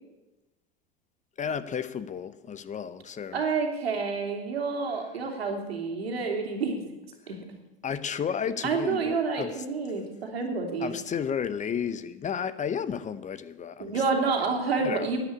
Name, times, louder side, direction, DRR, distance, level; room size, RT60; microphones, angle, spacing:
voice 1, 1.4-3.4 7.3-7.4 7.8-9.6 10.8-14.0 14.8-15.1, left 7 dB, 25° left, 0.8 m, -32 dB
voice 2, 3.3-6.9 7.3-7.4 8.6-11.0 13.8-15.2, right 4 dB, 85° right, 2.8 m, -29 dB
11.0 x 9.9 x 8.2 m
hypercardioid pair, 90°, 30 cm